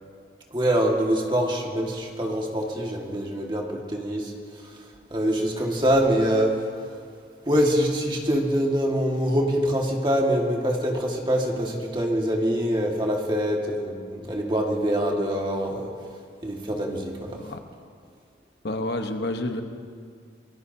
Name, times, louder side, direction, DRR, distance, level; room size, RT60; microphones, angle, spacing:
voice 1, 0.5-4.8 5.1-6.5 7.5-15.9 16.4-17.4, equal, 25° right, 0 dB, 1.8 m, -24 dB
voice 2, 18.6-19.6, left 1 dB, 70° left, 6 dB, 1.0 m, -29 dB
24.5 x 19.0 x 2.8 m, 2.1 s
head